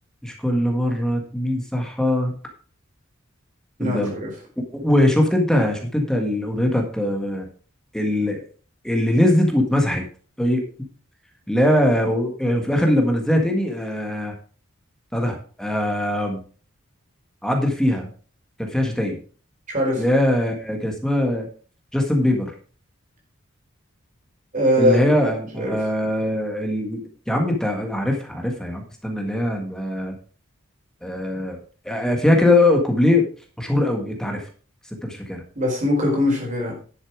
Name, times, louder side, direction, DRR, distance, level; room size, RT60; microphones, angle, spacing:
voice 1, 0.2-2.4 3.8-4.1 4.7-7.5 7.9-8.4 8.8-10.0 10.4-10.6 11.5-14.3 15.1-16.4 17.4-18.1 18.6-19.2 20.0-21.5 21.9-22.5 24.8-30.1 31.0-31.6 31.9-33.3 33.6-34.4 34.9-35.4, left 1 dB, 5° left, 2 dB, 1.8 m, -21 dB
voice 2, 3.8-4.3 19.7-20.0 24.5-25.1 25.6-25.8 35.5-36.7, left 1 dB, 40° right, 0 dB, 4.5 m, -21 dB
11.0 x 7.2 x 4.7 m, 0.40 s
head